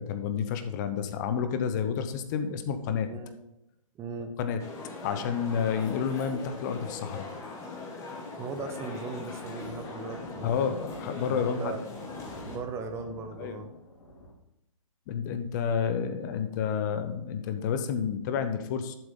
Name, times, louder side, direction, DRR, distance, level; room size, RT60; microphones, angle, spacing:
voice 1, 0.0-3.1 4.4-4.6 5.0-7.3 10.4-11.7 13.4-13.6 15.1-19.0, left 7 dB, 30° left, 9 dB, 0.9 m, -30 dB
voice 2, 3.9-4.4 5.6-5.7 8.3-10.7 11.3-11.8 12.4-13.7, right 4 dB, 15° right, 6 dB, 0.8 m, -38 dB
sound 1, 4.6-12.6, left 3 dB, 15° left, 1.8 m, -41 dB
sound 2, 8.4-14.3, left 1 dB, 50° left, 2.5 m, -48 dB
12.0 x 7.5 x 3.8 m, 0.88 s
figure-of-eight pair, 130°, 18 cm